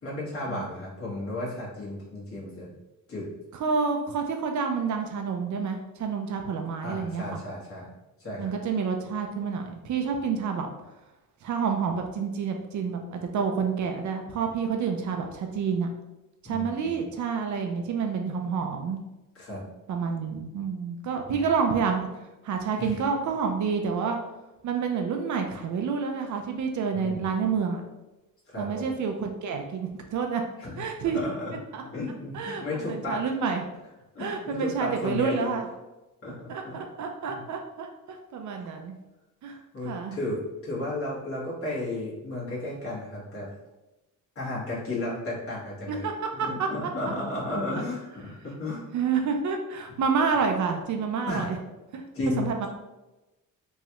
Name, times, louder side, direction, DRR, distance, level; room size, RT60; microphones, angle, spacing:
voice 1, 0.0-2.7 3.1-3.3 6.8-7.9 8.2-8.5 16.4-17.0 19.4-19.6 21.3-21.4 22.8-23.0 26.9-27.4 28.5-28.8 30.6-31.5 31.9-33.5 34.1-35.5 36.2-36.8 37.3-37.4 38.5-38.7 39.4-43.5 44.3-46.0 46.3-48.8 51.3-51.5 52.1-52.7, left 2 dB, 40° left, -6 dB, 1.3 m, -34 dB
voice 2, 3.5-7.4 8.4-10.7 11.4-15.9 16.4-19.0 19.9-22.1 22.4-24.2 24.6-27.8 28.6-30.4 30.8-31.2 31.7-31.8 32.3-33.7 34.2-35.7 36.5-39.0 39.4-39.6 39.8-40.2 45.9-46.1 46.4-46.7 48.9-51.6 51.9-52.0 52.4-52.7, right 5 dB, 60° right, 4 dB, 0.5 m, -28 dB
3.1 x 2.4 x 2.9 m, 1.0 s
cardioid pair, 105°, 34 cm